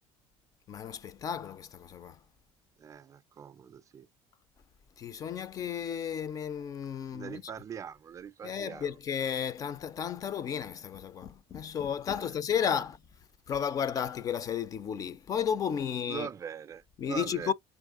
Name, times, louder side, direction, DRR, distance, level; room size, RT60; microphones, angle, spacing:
voice 1, 0.7-2.1 5.0-7.4 8.4-13.0 13.5-16.3 17.0-17.5, left 8 dB, 30° left, 0.4 m, -33 dB
voice 2, 2.8-4.1 7.1-9.0 12.1-12.4 16.1-17.5, right 7 dB, 30° right, 0.4 m, -42 dB
3.5 x 3.2 x 3.6 m
cardioid pair, 140°, 11 cm